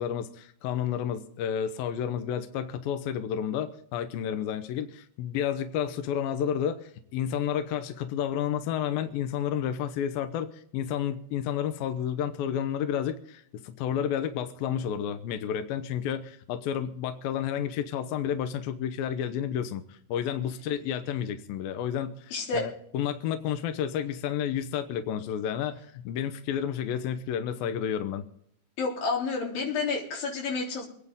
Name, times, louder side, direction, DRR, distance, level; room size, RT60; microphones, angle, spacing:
voice 1, 0.0-28.2, left 9 dB, 80° left, 8 dB, 2.1 m, -31 dB
voice 2, 22.3-22.7 28.8-30.9, left 4 dB, 55° left, -1 dB, 4.9 m, -29 dB
25.5 x 9.8 x 3.6 m, 0.68 s
omnidirectional pair, 5.2 m